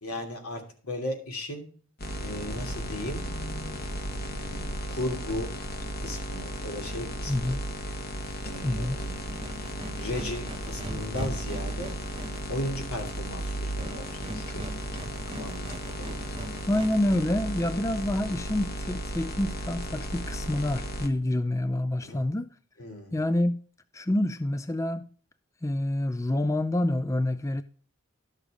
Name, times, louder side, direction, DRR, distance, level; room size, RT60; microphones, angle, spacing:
voice 1, 0.0-1.7 2.2-3.2 4.1-5.5 6.0-7.6 8.4-9.3 10.0-11.9 12.5-14.6 15.3-16.3 22.0-22.2 22.8-23.1, left 1 dB, 85° left, 2.9 m, -36 dB
sound 1, 2.0-21.1, equal, 45° left, 1.2 m, -35 dB
voice 2, 7.3-7.6 8.6-9.0 16.7-22.5 23.1-23.6 23.9-25.1 25.6-27.6, left 1 dB, 15° left, 0.4 m, -27 dB
sound 2, 8.2-17.2, right 1 dB, 25° right, 0.7 m, -41 dB
12.5 x 6.6 x 4.9 m
head